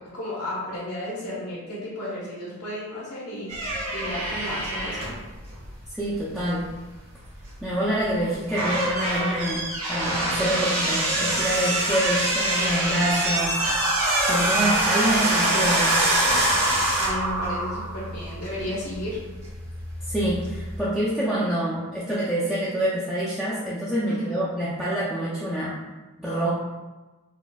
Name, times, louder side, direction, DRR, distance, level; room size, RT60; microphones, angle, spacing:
voice 1, 0.1-3.5 3.9-5.1 17.0-19.2 24.0-24.4, left 1 dB, 85° left, -6 dB, 1.1 m, -33 dB
sound 1, 3.5-20.9, right 1 dB, 80° right, 0.9 m, -26 dB
voice 2, 5.9-6.7 7.6-13.9 14.3-16.0 20.0-25.8 26.2-26.6, right 1 dB, ahead, -10 dB, 0.4 m, -26 dB
sound 2, 13.2-18.2, right 1 dB, 55° right, 0.6 m, -27 dB
4.0 x 2.5 x 2.3 m, 1.2 s
head